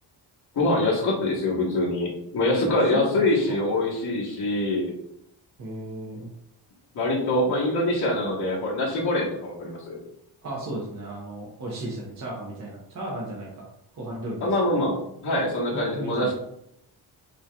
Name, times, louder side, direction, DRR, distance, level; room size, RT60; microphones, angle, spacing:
voice 1, 0.5-4.9 6.9-10.0 14.4-16.3, left 1 dB, 65° left, -4 dB, 1.2 m, -24 dB
voice 2, 2.7-3.6 5.6-6.3 10.4-13.6 13.9-14.6 15.7-16.3, right 1 dB, 45° right, -3 dB, 0.8 m, -35 dB
5.2 x 2.8 x 2.2 m, 0.76 s
wide cardioid pair, 160°, 41 cm